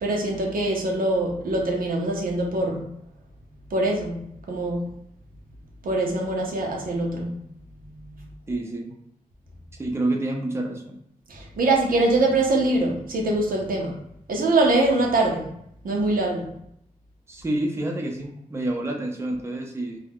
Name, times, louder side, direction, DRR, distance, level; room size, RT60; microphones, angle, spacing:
voice 1, 0.0-2.8 3.7-4.2 4.5-4.9 5.8-7.3 7.7-8.3 11.3-13.9 14.3-15.5 15.8-16.5, right 2 dB, 90° right, -1 dB, 0.6 m, -23 dB
voice 2, 8.5-8.9 9.8-11.0 17.3-20.0, right 1 dB, 20° right, 1 dB, 0.5 m, -28 dB
2.3 x 2.1 x 3.4 m, 0.73 s
wide cardioid pair, 85°, 14 cm